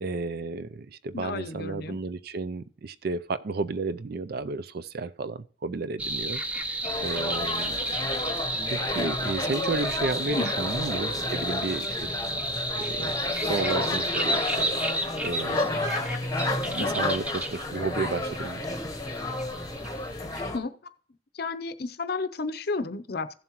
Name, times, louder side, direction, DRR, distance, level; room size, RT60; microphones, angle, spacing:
voice 1, 0.0-8.3 8.7-13.2 13.4-15.7 16.6-18.8, right 4 dB, 50° right, 0.4 m, -33 dB
voice 2, 1.1-2.0 10.3-10.5 16.8-17.1 20.5-20.7 21.4-23.3, left 3 dB, 50° left, 0.6 m, -32 dB
sound 1, 6.0-20.4, right 1 dB, 5° right, 0.6 m, -32 dB
sound 2, 6.8-20.6, left 2 dB, 20° left, 0.9 m, -31 dB
15.5 x 7.4 x 3.0 m
head